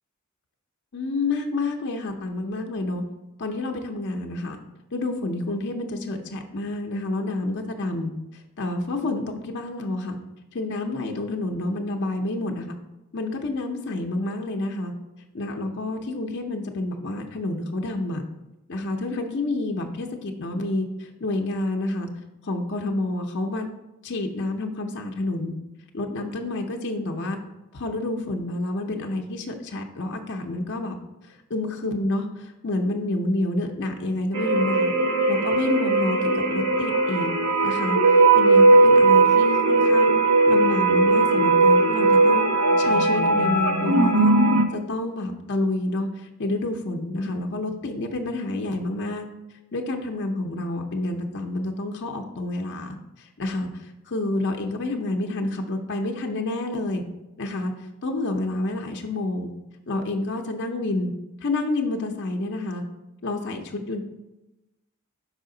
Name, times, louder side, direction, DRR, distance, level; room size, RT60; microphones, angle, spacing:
voice 1, 0.9-3.0 3.4-4.6 4.9-10.2 10.5-12.8 13.1-14.9 15.3-18.2 18.7-22.1 22.4-23.7 24.0-25.5 25.9-27.4 27.7-31.0 31.2-34.9 35.3-37.3 37.6-40.1 40.4-42.4 42.8-44.3 44.7-49.3 49.7-53.7 54.0-57.0 57.4-57.7 58.0-59.5 59.9-61.1 61.4-62.8 63.2-64.0, left 2 dB, 55° left, 3 dB, 0.6 m, -29 dB
sound 1, 34.3-44.6, right 2 dB, 90° right, 0.6 m, -18 dB
5.6 x 4.9 x 3.8 m, 1.0 s
head